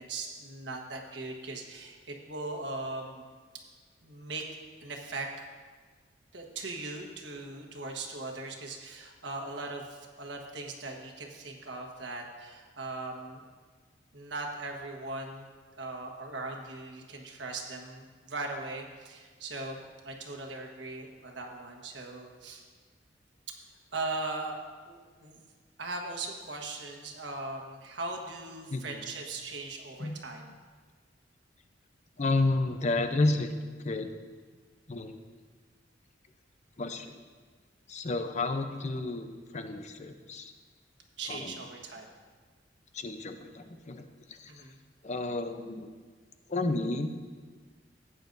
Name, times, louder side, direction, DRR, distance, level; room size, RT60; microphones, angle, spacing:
voice 1, 0.0-3.2 4.0-4.4 4.8-5.4 6.3-13.4 14.1-15.5 15.8-22.6 23.9-24.6 24.9-25.4 25.8-30.4 41.2-42.1 44.5-44.8, right 2 dB, 70° right, 1 dB, 1.4 m, -39 dB
voice 2, 28.7-29.0 30.0-30.2 32.2-33.5 33.8-34.1 34.9-35.2 36.8-37.1 37.9-40.5 41.3-41.5 42.9-44.6 45.0-45.9 46.5-47.1, left 2 dB, 40° left, 7 dB, 0.7 m, -31 dB
15.5 x 8.9 x 2.7 m, 1.5 s
head